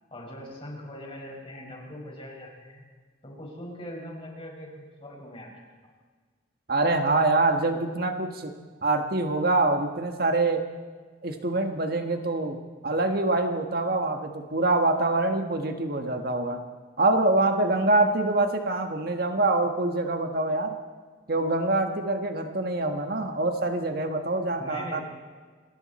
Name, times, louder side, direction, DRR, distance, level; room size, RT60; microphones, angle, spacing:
voice 1, 0.1-2.8 3.2-5.5 5.8-5.9 24.6-25.0, left 1 dB, 30° left, -1 dB, 5.7 m, -41 dB
voice 2, 6.7-8.5 8.8-10.6 11.2-16.6 17.0-20.8 21.3-25.0, right 2 dB, 50° right, 5 dB, 1.5 m, -25 dB
28.0 x 21.5 x 4.3 m, 1.5 s
head